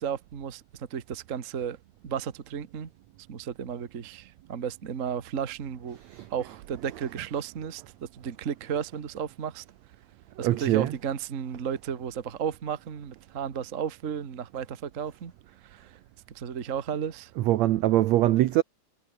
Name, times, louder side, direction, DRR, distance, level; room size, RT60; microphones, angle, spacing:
voice 1, 0.0-1.8 2.0-2.9 3.3-6.0 6.3-9.6 10.4-15.3 15.6-16.0 16.3-17.3, right 7 dB, 70° right, 0.7 m, -34 dB
voice 2, 10.4-10.9 17.4-18.6, right 15 dB, 85° right, 1.5 m, -23 dB
omnidirectional pair, 4.1 m